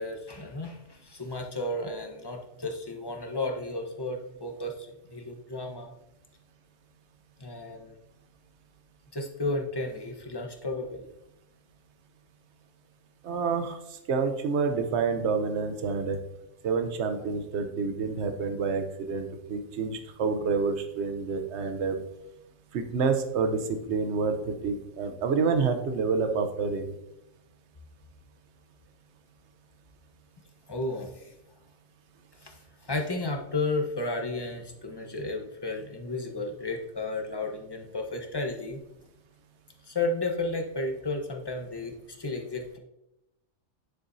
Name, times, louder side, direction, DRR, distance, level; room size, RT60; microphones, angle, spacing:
voice 1, 0.0-5.9 7.4-8.0 9.1-11.1 30.7-31.3 32.4-32.6 32.8-38.8 39.8-42.8, left 2 dB, 20° left, 2 dB, 0.9 m, -33 dB
voice 2, 13.2-13.8 14.1-16.2 16.6-22.0 22.7-26.9, right 5 dB, 65° right, 7 dB, 1.1 m, -28 dB
9.3 x 6.9 x 2.7 m, 0.87 s
omnidirectional pair, 1.3 m